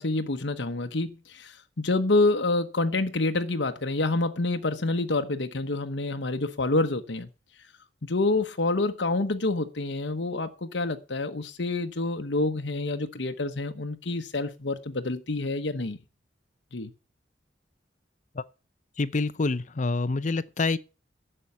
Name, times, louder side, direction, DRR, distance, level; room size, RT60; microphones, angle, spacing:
voice 1, 0.0-7.3 8.0-16.0 16.7-16.9, left 2 dB, 75° left, 1.1 m, -27 dB
voice 2, 19.0-20.8, left 3 dB, 40° left, 0.6 m, -27 dB
11.0 x 7.8 x 7.1 m
head